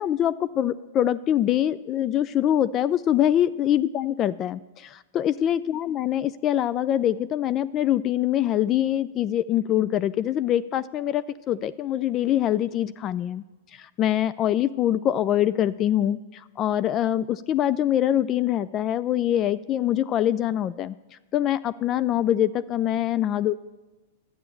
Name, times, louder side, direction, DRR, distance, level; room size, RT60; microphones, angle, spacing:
voice 1, 0.0-13.4 13.7-21.0 21.3-23.6, left 11 dB, 35° left, 16 dB, 0.3 m, -24 dB
11.0 x 8.7 x 6.9 m, 1.1 s
hypercardioid pair, 115°, 0 cm